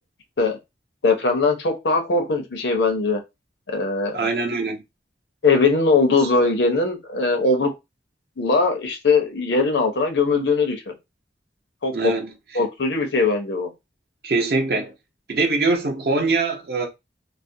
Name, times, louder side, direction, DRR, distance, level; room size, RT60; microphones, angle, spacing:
voice 1, 1.0-3.2 3.7-4.3 5.4-7.7 8.4-10.9 11.8-12.1 12.5-13.7, left 3 dB, 80° left, 0.6 m, -20 dB
voice 2, 4.1-4.8 6.2-6.3 11.9-12.3 14.2-14.9 15.3-16.9, right 3 dB, 55° right, 0.6 m, -23 dB
2.3 x 2.0 x 2.6 m
head